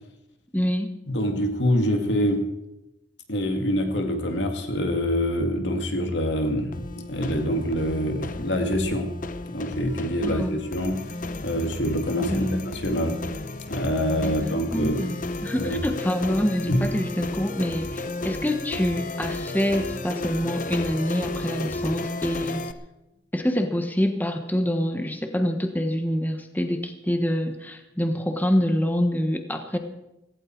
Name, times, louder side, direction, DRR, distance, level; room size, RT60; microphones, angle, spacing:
voice 1, 0.5-0.9 10.2-10.5 12.3-12.7 14.2-15.2 15.4-22.6 23.3-29.8, equal, 10° left, 5 dB, 1.2 m, -26 dB
voice 2, 1.1-2.5 3.3-9.1 9.4-11.0 11.4-13.2 13.7-15.0 15.6-15.8 16.7-16.9, equal, 70° left, 4 dB, 2.2 m, -25 dB
sound 1, 6.7-22.7, left 2 dB, 45° left, 0.8 m, -33 dB
16.5 x 16.0 x 4.6 m, 0.94 s
head